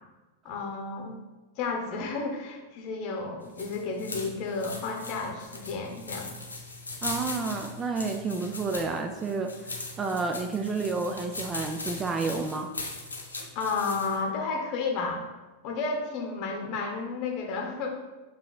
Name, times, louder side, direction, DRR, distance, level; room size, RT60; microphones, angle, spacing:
voice 1, 0.4-1.2 1.6-6.3 13.5-15.2 15.6-18.0, left 4 dB, 40° left, 2 dB, 0.8 m, -32 dB
sound 1, 3.4-14.2, left 3 dB, 75° left, 0.7 m, -39 dB
voice 2, 7.0-12.7, right 4 dB, 20° right, 5 dB, 0.3 m, -30 dB
6.8 x 3.0 x 2.3 m, 1.2 s
figure-of-eight pair, 90°, 0 cm